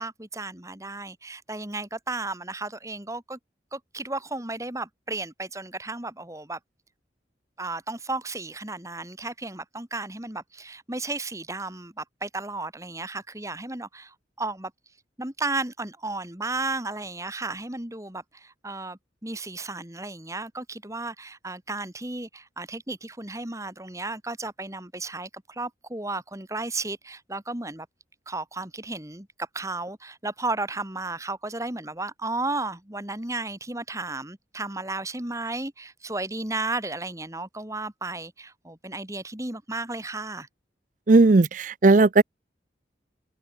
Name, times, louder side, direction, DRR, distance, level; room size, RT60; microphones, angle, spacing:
voice 1, 0.0-3.4 3.7-6.6 7.6-14.7 15.2-27.9 28.3-40.5, right 2 dB, 15° right, 2.3 m, -34 dB
voice 2, 41.1-42.2, right 3 dB, 45° right, 0.5 m, -16 dB
open air
head